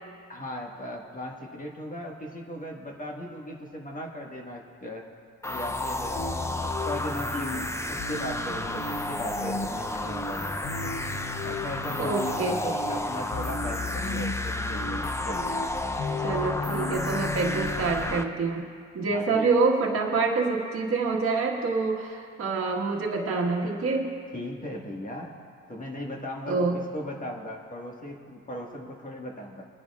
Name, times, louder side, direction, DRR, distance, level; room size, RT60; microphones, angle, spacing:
voice 1, 0.3-5.1 5.4-10.8 11.4-15.6 19.1-19.5 24.3-25.3 25.7-29.6, equal, 25° left, 0 dB, 1.6 m, -38 dB
sound 1, 5.4-18.2, left 1 dB, 10° left, 0.5 m, -32 dB
sound 2, 6.1-18.2, left 3 dB, 50° left, 0.9 m, -35 dB
voice 2, 12.0-12.6 16.2-18.6 18.9-24.2 26.5-26.8, right 4 dB, 50° right, -2 dB, 1.6 m, -26 dB
24.0 x 10.5 x 2.4 m, 2.2 s
cardioid pair, 90°, 30 cm